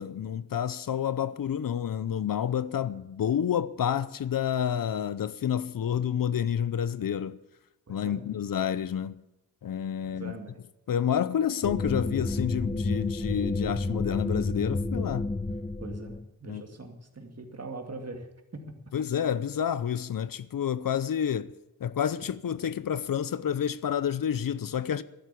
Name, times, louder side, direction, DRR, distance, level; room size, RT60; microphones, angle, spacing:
voice 1, 0.0-7.3 7.9-9.2 9.6-10.3 10.9-15.3 16.5-16.6 18.9-21.5 21.8-25.0, left 9 dB, 60° left, 0.7 m, -29 dB
voice 2, 7.9-8.3 10.0-10.6 15.8-18.7, right 2 dB, 40° right, 2.4 m, -42 dB
sound 1, 11.6-16.3, left 2 dB, 15° left, 0.6 m, -30 dB
12.0 x 10.5 x 8.4 m
cardioid pair, 70°, 38 cm